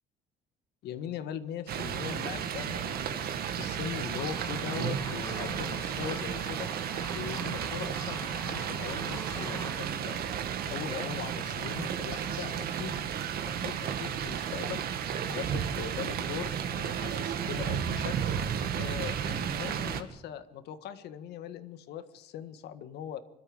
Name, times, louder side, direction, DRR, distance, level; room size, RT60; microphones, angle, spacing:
voice 1, 0.8-3.2 3.5-6.7 7.1-10.4 10.7-13.0 13.4-18.2 18.4-23.2, left 9 dB, 75° left, 11 dB, 1.7 m, -40 dB
sound 1, 1.7-20.0, right 8 dB, 65° right, 2.0 m, -33 dB
sound 2, 4.2-9.9, left 3 dB, 20° left, 1.4 m, -46 dB
26.0 x 13.0 x 8.8 m, 0.86 s
cardioid pair, 110°, 17 cm